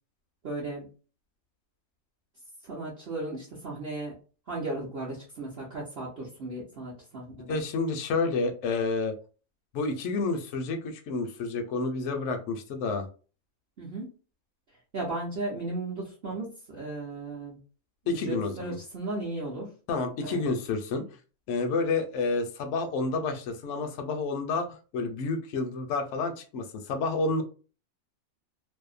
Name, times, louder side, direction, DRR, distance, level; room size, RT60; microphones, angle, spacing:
voice 1, 0.4-0.9 2.6-4.1 4.5-7.6 13.8-14.1 14.9-17.6 18.1-19.7 20.2-20.4, right 2 dB, 50° right, -6 dB, 0.8 m, -35 dB
voice 2, 7.5-9.2 9.7-13.1 18.1-18.8 19.9-21.1 21.5-24.7 24.9-27.4, left 3 dB, 65° left, 6 dB, 0.8 m, -29 dB
2.7 x 2.0 x 2.4 m, 0.36 s
omnidirectional pair, 1.5 m